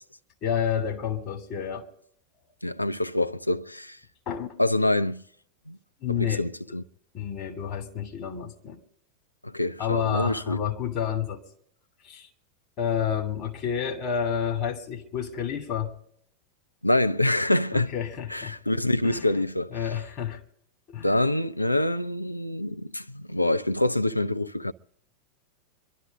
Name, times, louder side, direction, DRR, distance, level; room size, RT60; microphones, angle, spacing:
voice 1, 0.4-1.9 4.3-4.5 6.0-6.4 7.1-8.8 9.8-11.4 12.0-12.3 12.8-15.9 17.7-18.6 19.0-19.3 19.7-20.4 20.9-21.1, left 8 dB, 40° left, 2.5 m, -29 dB
voice 2, 2.6-4.0 4.6-5.2 5.7-5.8 6.1-6.8 9.4-10.7 16.8-17.9 18.3-19.7 21.0-24.7, left 1 dB, 85° left, 0.5 m, -26 dB
26.5 x 12.0 x 3.6 m
figure-of-eight pair, 90°, 0 cm